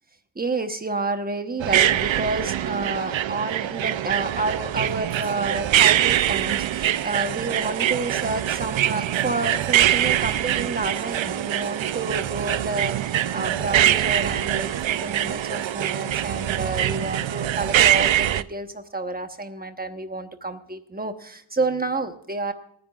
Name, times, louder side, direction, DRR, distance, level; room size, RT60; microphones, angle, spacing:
voice 1, 0.4-22.5, right 3 dB, 20° right, 7 dB, 1.1 m, -29 dB
sound 1, 1.6-18.4, right 12 dB, 75° right, 0.6 m, -23 dB
27.5 x 10.5 x 2.4 m, 0.70 s
wide cardioid pair, 165°, 47 cm